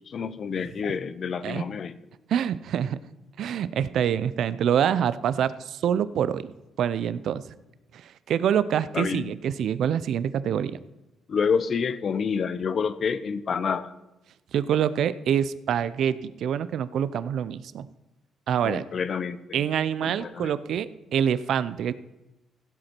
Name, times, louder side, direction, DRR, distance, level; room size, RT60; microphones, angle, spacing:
voice 1, 0.0-1.9 8.9-9.3 11.3-13.9 18.6-19.6 20.0-20.5, left 6 dB, 50° left, 15 dB, 0.7 m, -28 dB
voice 2, 2.3-3.0 3.4-6.5 6.8-7.4 7.9-10.8 14.5-17.9 18.5-18.9 19.5-21.9, right 9 dB, 70° right, 16 dB, 0.5 m, -26 dB
16.0 x 7.8 x 4.5 m, 1.0 s
cardioid pair, 90°, 0 cm